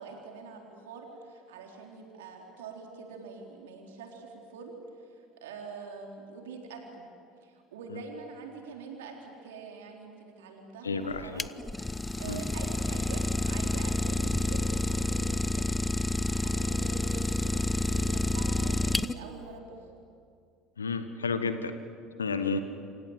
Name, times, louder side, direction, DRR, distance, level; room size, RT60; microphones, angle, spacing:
voice 1, 0.0-7.1 7.4-11.5 12.2-15.9 16.2-19.9 22.5-22.6, right 5 dB, 75° right, 2 dB, 3.8 m, -45 dB
voice 2, 10.8-11.5 12.3-12.4 20.8-21.7 22.2-22.6, left 4 dB, 85° left, 10 dB, 1.4 m, -31 dB
Idling, 11.1-19.4, left 2 dB, 10° left, 0.7 m, -29 dB
28.5 x 26.0 x 8.0 m, 2.4 s
figure-of-eight pair, 65°, 0 cm